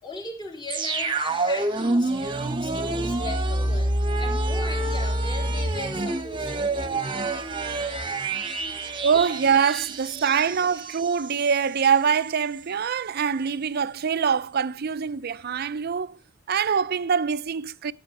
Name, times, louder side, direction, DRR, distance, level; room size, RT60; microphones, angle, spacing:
voice 1, 0.0-2.1 2.4-7.0 8.4-9.1 10.1-10.2 10.7-10.8, left 2 dB, 25° left, 3.4 m, -39 dB
sound 1, 0.7-11.5 11.8-11.9, right 2 dB, 25° right, 1.2 m, -27 dB
voice 2, 9.0-16.2 16.5-17.9, right 6 dB, 50° right, 0.5 m, -24 dB
14.5 x 8.6 x 4.6 m
head